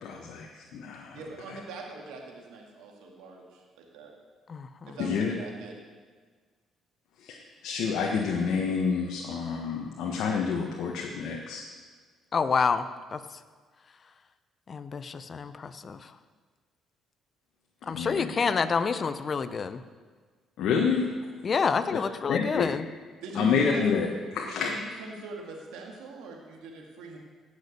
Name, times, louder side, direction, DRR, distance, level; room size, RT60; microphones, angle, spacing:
voice 1, 0.0-1.2 1.5-1.6 5.0-5.3 7.2-11.6 17.8-18.3 20.6-21.0 21.9-22.0 22.3-22.7 23.4-24.7, left 5 dB, 75° left, 0 dB, 1.3 m, -28 dB
voice 2, 1.1-4.1 4.8-5.7 20.7-21.3 23.2-23.8 24.5-27.2, right 4 dB, 85° right, 0 dB, 2.4 m, -42 dB
voice 3, 4.5-4.9 12.3-13.2 14.7-16.1 17.9-19.8 21.4-22.8 23.4-23.8, left 5 dB, 40° left, 12 dB, 0.7 m, -28 dB
17.0 x 6.6 x 6.8 m, 1.5 s
cardioid pair, 100°, 0 cm